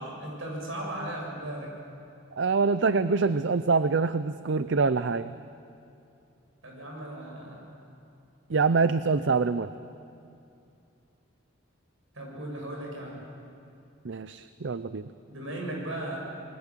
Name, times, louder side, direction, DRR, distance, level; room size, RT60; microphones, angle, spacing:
voice 1, 0.0-1.7 6.6-7.8 12.1-13.2 15.3-16.2, right 1 dB, 80° right, -1 dB, 7.4 m, -37 dB
voice 2, 2.4-5.3 8.5-9.7 14.0-15.1, right 4 dB, 60° right, 13 dB, 0.5 m, -25 dB
28.5 x 21.5 x 7.5 m, 2.6 s
head